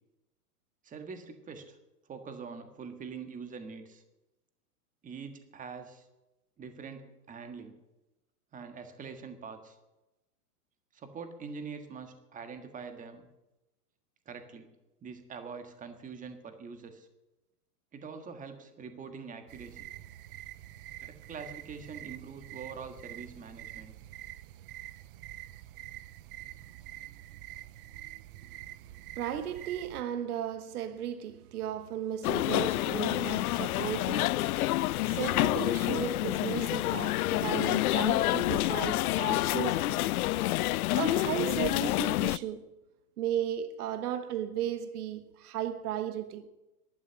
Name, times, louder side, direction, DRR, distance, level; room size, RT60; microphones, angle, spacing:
voice 1, 0.8-1.8 2.1-4.0 5.0-6.1 6.6-7.7 8.5-9.8 10.9-13.3 14.2-14.7 15.0-17.1 17.9-19.9 21.0-23.9, right 5 dB, 15° right, 1.6 m, -44 dB
sound 1, 19.5-30.0, right 14 dB, 40° right, 0.4 m, -46 dB
voice 2, 29.2-40.1 40.9-42.7 43.2-46.5, right 10 dB, 75° right, 1.3 m, -35 dB
sound 2, 32.2-42.4, left 17 dB, 70° left, 0.5 m, -28 dB
12.0 x 9.0 x 10.0 m
hypercardioid pair, 135°, 46 cm